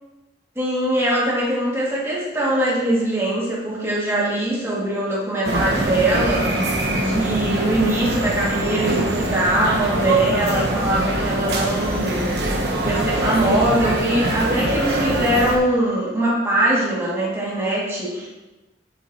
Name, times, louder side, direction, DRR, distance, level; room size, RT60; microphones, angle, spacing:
voice 1, 0.6-12.3 12.8-18.3, right 1 dB, 15° right, -6 dB, 2.1 m, -22 dB
sound 1, 5.4-15.6, right 1 dB, 70° right, 1.2 m, -23 dB
8.2 x 7.6 x 2.9 m, 1.1 s
head